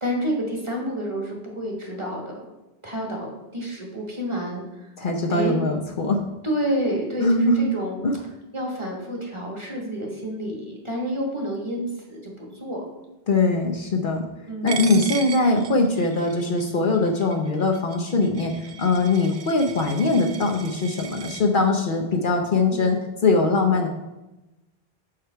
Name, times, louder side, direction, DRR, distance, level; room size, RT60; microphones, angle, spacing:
voice 1, 0.0-2.5 2.8-4.6 5.3-5.7 6.4-8.0 8.5-12.9 14.5-15.0 16.8-16.9 22.7-23.0, equal, 30° right, -1 dB, 1.3 m, -29 dB
voice 2, 5.0-6.2 7.2-7.6 8.0-8.1 13.3-14.2 14.6-23.9, left 3 dB, 55° left, 3 dB, 0.8 m, -21 dB
Coin (dropping), 14.7-21.4, right 7 dB, 60° right, 0.3 m, -37 dB
6.8 x 4.9 x 4.5 m, 1.0 s
omnidirectional pair, 1.1 m